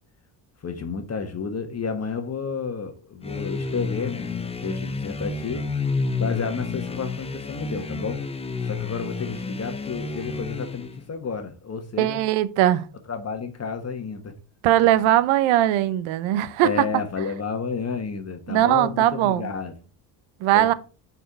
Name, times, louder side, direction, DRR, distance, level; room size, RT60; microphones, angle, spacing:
voice 1, 0.6-5.7 6.2-8.2 8.6-12.2 13.1-14.3 16.6-19.7 20.5-20.7, left 5 dB, 30° left, 1.2 m, -31 dB
sound 1, 3.2-11.0, left 4 dB, 10° left, 0.7 m, -30 dB
voice 2, 12.0-12.9 14.6-16.7 18.5-19.5 20.4-20.7, right 13 dB, 75° right, 0.8 m, -20 dB
6.4 x 4.6 x 4.5 m
supercardioid pair, 90°, 49 cm